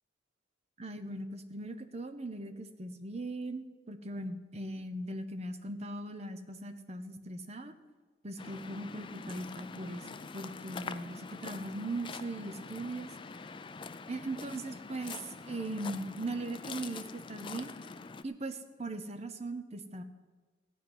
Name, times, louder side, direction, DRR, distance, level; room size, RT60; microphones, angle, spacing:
voice 1, 0.8-7.7 8.2-13.1 14.1-17.7 18.2-20.0, right 2 dB, 35° right, 9 dB, 0.8 m, -39 dB
Waves surf, 8.4-18.2, left 4 dB, 25° left, 0.4 m, -45 dB
15.0 x 5.5 x 9.7 m, 1.3 s
head